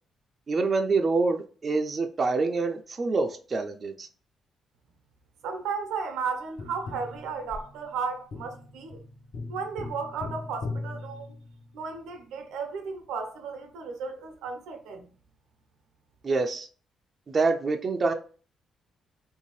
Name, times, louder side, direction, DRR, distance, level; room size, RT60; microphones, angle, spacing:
voice 1, 0.5-4.1 16.2-16.7 17.3-18.1, right 3 dB, 40° right, 0.4 m, -26 dB
voice 2, 5.4-9.0 9.5-11.3 11.7-15.1, right 5 dB, 90° right, 0.7 m, -34 dB
Tap, 6.6-11.9 14.5-14.6, left 3 dB, 50° left, 0.7 m, -39 dB
3.2 x 2.7 x 3.0 m
cardioid pair, 90°, 0 cm